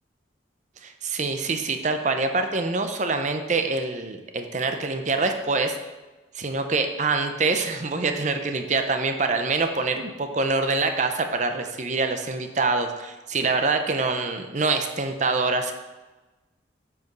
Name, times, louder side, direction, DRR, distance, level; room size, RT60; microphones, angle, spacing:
voice 1, 0.8-5.8 6.3-15.7, right 3 dB, 40° right, 6 dB, 0.6 m, -25 dB
7.8 x 4.8 x 5.3 m, 1.2 s
head